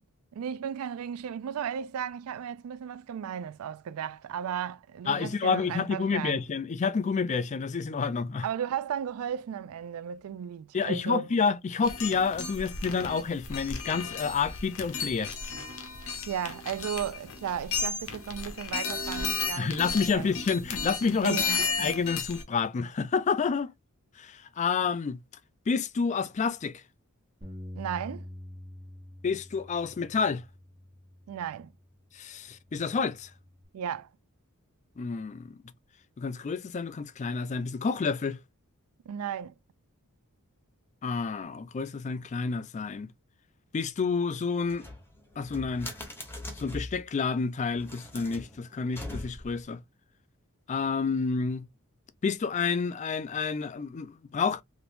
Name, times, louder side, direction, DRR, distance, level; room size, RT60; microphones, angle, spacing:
voice 1, 0.3-6.4 8.4-11.3 16.3-20.3 21.2-21.7 27.8-28.3 31.3-31.7 33.7-34.1 39.1-39.5, right 8 dB, 75° right, 0.3 m, -35 dB
voice 2, 5.1-8.5 10.7-15.3 19.6-21.4 21.8-23.7 24.2-25.2 25.7-26.7 29.2-30.4 32.2-33.3 35.0-35.6 36.2-38.4 41.0-43.1 43.7-44.8 45.4-45.9 46.6-49.8 50.7-51.6 52.2-54.6, left 5 dB, 35° left, 0.3 m, -29 dB
sound 1, 11.8-22.4, left 5 dB, 65° left, 0.8 m, -34 dB
Bass guitar, 27.4-31.9 32.5-33.6, left 1 dB, 25° right, 1.0 m, -46 dB
sound 2, 44.6-47.0 47.7-49.6, left 1 dB, 10° left, 1.0 m, -41 dB
3.3 x 2.9 x 2.5 m
head